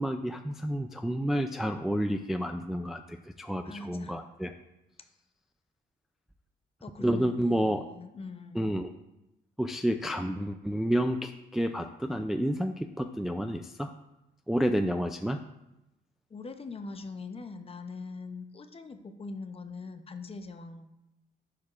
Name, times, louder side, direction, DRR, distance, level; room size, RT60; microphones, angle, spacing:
voice 1, 0.0-4.5 7.0-7.8 8.5-8.9 9.6-13.9 14.5-15.4, equal, ahead, 6 dB, 0.3 m, -30 dB
voice 2, 3.6-4.1 6.8-8.7 16.3-20.9, left 3 dB, 30° left, 8 dB, 0.6 m, -42 dB
11.0 x 4.6 x 2.4 m, 0.92 s
cardioid pair, 90°, 20 cm